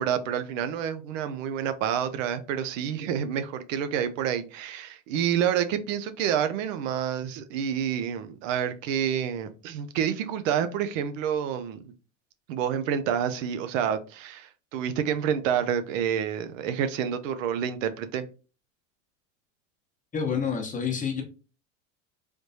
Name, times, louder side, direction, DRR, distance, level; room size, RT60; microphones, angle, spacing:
voice 1, 0.0-11.9 12.5-18.3, right 8 dB, 75° right, 0.6 m, -28 dB
voice 2, 20.1-21.2, left 6 dB, 20° left, 0.9 m, -28 dB
3.3 x 3.2 x 2.7 m
supercardioid pair, 105°, 39 cm